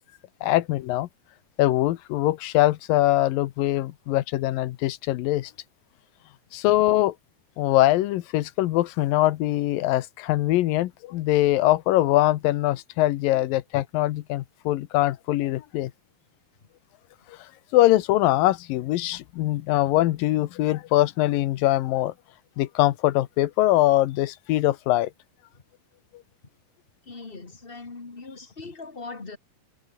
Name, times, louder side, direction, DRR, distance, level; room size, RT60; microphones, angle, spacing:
voice 1, 0.4-1.1 1.6-5.5 6.5-7.1 7.6-15.9 17.3-17.4 17.7-22.1 22.6-25.1, left 16 dB, 85° left, 2.6 m, -22 dB
voice 2, 27.0-29.4, left 3 dB, 20° left, 1.6 m, -40 dB
omnidirectional pair, 4.0 m